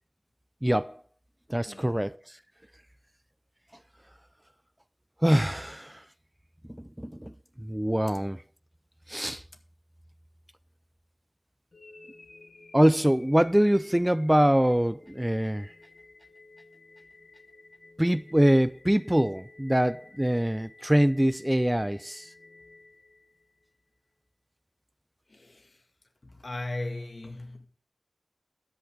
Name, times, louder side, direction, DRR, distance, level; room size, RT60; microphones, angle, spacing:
voice 1, 0.6-1.0 1.5-2.1 5.2-6.0 6.7-8.4 9.1-9.4 12.7-15.7 18.0-22.3, equal, 10° right, 0.4 m, -24 dB
voice 2, 1.7-2.1 25.3-25.9 26.2-27.7, left 2 dB, 65° left, 2.1 m, -38 dB
sound 1, 11.7-23.8, left 2 dB, 85° left, 1.4 m, -53 dB
13.5 x 8.8 x 3.7 m
wide cardioid pair, 60°, 0 cm